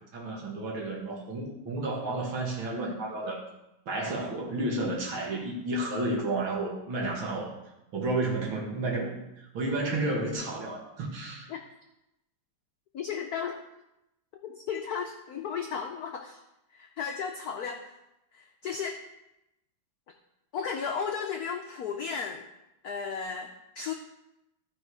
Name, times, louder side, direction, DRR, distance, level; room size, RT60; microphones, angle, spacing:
voice 1, 0.1-3.4 3.9-7.5 7.9-11.5, right 2 dB, 65° right, -2 dB, 2.6 m, -31 dB
voice 2, 12.9-13.6 14.4-16.4 16.7-17.9 18.3-19.0 20.5-22.5 22.8-23.5 23.8-23.9, left 6 dB, 80° left, 4 dB, 0.8 m, -34 dB
13.5 x 5.2 x 4.7 m, 0.90 s
omnidirectional pair, 2.4 m